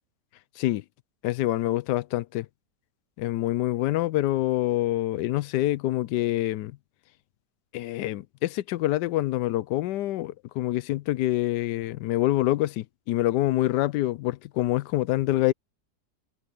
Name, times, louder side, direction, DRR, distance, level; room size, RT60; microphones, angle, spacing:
voice 1, 1.2-2.5 3.2-6.8 7.7-15.5, left 15 dB, 90° left, 1.2 m, -26 dB
omnidirectional pair, 1.8 m